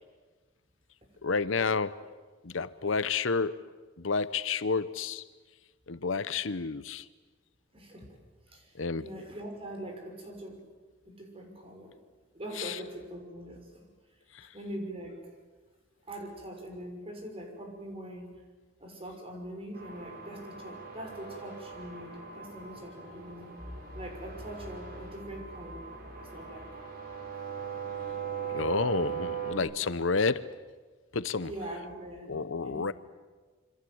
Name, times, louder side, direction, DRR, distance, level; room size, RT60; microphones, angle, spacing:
voice 1, 1.2-2.0 2.4-3.6 4.0-5.2 5.9-7.1 8.8-9.0 12.6-12.8 14.3-14.5 28.5-30.5 31.1-31.5 32.3-32.9, left 4 dB, 75° left, 0.9 m, -30 dB
voice 2, 7.7-8.2 8.5-10.6 11.1-12.0 12.3-13.9 14.5-15.3 16.1-18.3 18.8-23.5 23.9-25.9 26.1-26.7 31.4-32.9, right 1 dB, 30° right, 6.0 m, -42 dB
sound 1, 19.7-29.5, right 7 dB, 50° right, 5.8 m, -40 dB
27.0 x 25.5 x 7.9 m
head